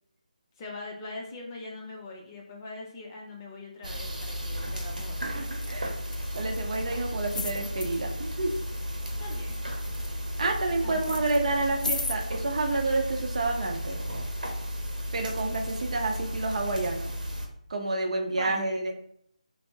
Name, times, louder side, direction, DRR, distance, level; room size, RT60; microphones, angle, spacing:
voice 1, 0.6-5.3 9.2-9.6 10.8-11.2 18.4-18.7, left 2 dB, 25° left, 0 dB, 0.5 m, -42 dB
sound 1, 3.8-17.5, equal, 80° right, 0.8 m, -34 dB
voice 2, 5.2-6.0 6.3-8.5 10.4-14.0 15.1-17.1 17.7-18.9, right 2 dB, 50° right, 2 dB, 0.6 m, -29 dB
sound 2, 5.6-5.8 6.1-6.8 7.3-7.9 8.5-9.0 9.3-10.7 11.0-12.2 13.0-13.1, left 3 dB, 80° left, 0.3 m, -35 dB
4.3 x 2.0 x 2.8 m, 0.67 s
figure-of-eight pair, 155°, 4 cm